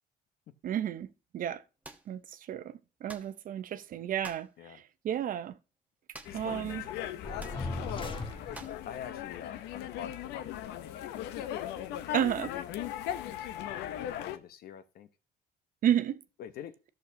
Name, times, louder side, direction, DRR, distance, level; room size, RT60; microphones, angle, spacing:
voice 1, 0.6-1.6 2.1-5.5 6.3-6.8 8.5-8.6 12.1-12.5 15.8-16.2, right 10 dB, 55° right, 0.7 m, -32 dB
sound 1, 1.8-2.1 3.1-3.4 4.2-4.5 6.1-6.5 6.8-6.9 7.4-7.6 8.5-8.8, right 2 dB, 10° right, 1.0 m, -48 dB
sound 2, 6.3-14.4, left 11 dB, 90° left, 0.7 m, -38 dB
voice 2, 6.3-8.0 8.6-13.7 14.0-15.1 16.4-16.8, left 9 dB, 65° left, 1.0 m, -47 dB
sound 3, 7.2-8.9, left 2 dB, 30° left, 1.5 m, -38 dB
13.5 x 6.5 x 2.8 m
cardioid pair, 110°, 17 cm